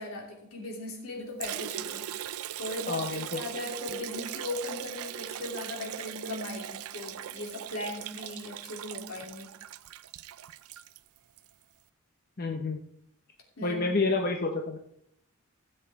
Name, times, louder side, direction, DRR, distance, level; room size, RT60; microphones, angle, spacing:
voice 1, 0.0-2.1 2.5-9.5 13.6-14.0, left 2 dB, 75° left, -1 dB, 2.9 m, -38 dB
Liquid, 1.4-11.5, right 11 dB, 80° right, 0.4 m, -39 dB
voice 2, 2.9-3.4 12.4-12.8 13.6-14.8, left 3 dB, 40° left, 2 dB, 0.8 m, -29 dB
16.0 x 7.8 x 3.6 m, 0.76 s
head